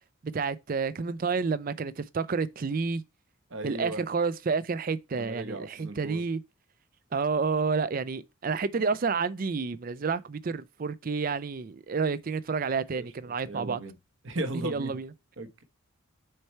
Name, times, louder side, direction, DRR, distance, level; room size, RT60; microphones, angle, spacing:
voice 1, 0.2-3.0 3.6-6.4 7.1-13.8 14.6-15.1, right 4 dB, 40° right, 0.4 m, -30 dB
voice 2, 3.5-4.0 5.1-6.2 13.0-13.9 14.2-15.0 15.4-15.6, right 1 dB, 60° right, 1.0 m, -37 dB
6.6 x 4.5 x 4.4 m
head